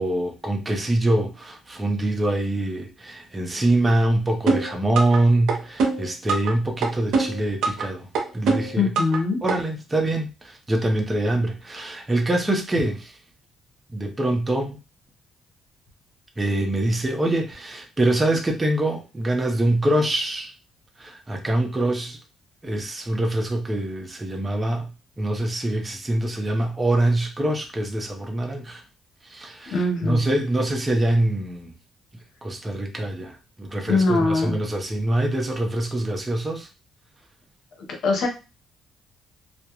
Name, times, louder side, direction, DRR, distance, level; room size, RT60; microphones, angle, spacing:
voice 1, 0.0-8.1 8.3-8.9 9.4-13.1 13.9-14.8 16.4-20.5 21.0-22.2 22.6-24.9 25.2-28.8 29.2-29.8 30.0-31.7 32.4-36.7, right 1 dB, 20° right, 3 dB, 0.6 m, -24 dB
sound 1, 4.5-5.2 5.5-6.5 6.8-7.9 8.2-9.2 9.5-9.6, right 4 dB, 80° right, 0.6 m, -22 dB
voice 2, 8.8-9.4 29.7-30.2 33.9-34.6 37.9-38.3, left 3 dB, 70° left, 2 dB, 0.8 m, -22 dB
2.3 x 2.0 x 2.9 m, 0.30 s
cardioid pair, 90°, 0 cm